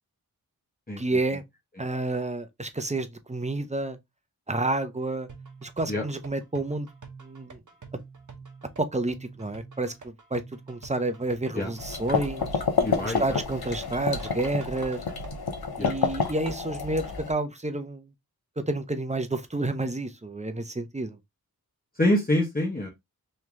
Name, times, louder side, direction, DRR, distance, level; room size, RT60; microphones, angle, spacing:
voice 1, 1.0-1.4 1.8-4.0 4.5-5.3 5.6-6.9 7.2-7.6 8.8-10.4 10.7-12.6 13.0-15.0 15.8-18.1 18.6-21.2, right 2 dB, 20° right, 0.6 m, -30 dB
sound 1, 5.3-15.3, right 4 dB, 55° right, 0.9 m, -47 dB
sound 2, 11.8-17.3, left 5 dB, 85° left, 0.8 m, -29 dB
voice 2, 12.8-13.4 15.8-15.9 22.0-22.9, left 1 dB, 25° left, 1.0 m, -25 dB
3.2 x 2.8 x 3.5 m
wide cardioid pair, 65°, 36 cm